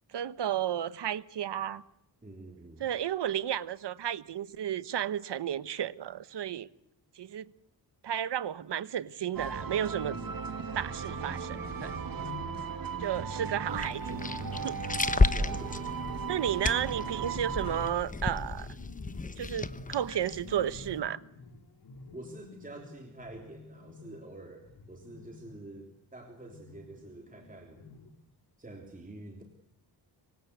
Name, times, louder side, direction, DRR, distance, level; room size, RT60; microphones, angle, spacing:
voice 1, 0.1-1.8 2.8-6.7 7.2-7.5 8.0-10.2 10.7-11.9 13.0-14.2 14.6-14.8 16.3-18.7 19.4-21.2, right 10 dB, 75° right, 1.1 m, -32 dB
voice 2, 2.2-2.9 11.1-11.4 15.3-15.9 22.1-27.9 28.6-29.4, right 2 dB, 20° right, 3.5 m, -47 dB
sound 1, 9.3-17.9, right 5 dB, 55° right, 2.4 m, -37 dB
sound 2, 10.9-25.7 26.4-28.3, left 3 dB, 60° left, 3.3 m, -50 dB
sound 3, 13.7-21.0, left 3 dB, 20° left, 1.0 m, -32 dB
26.0 x 24.0 x 8.2 m
wide cardioid pair, 135°, 41 cm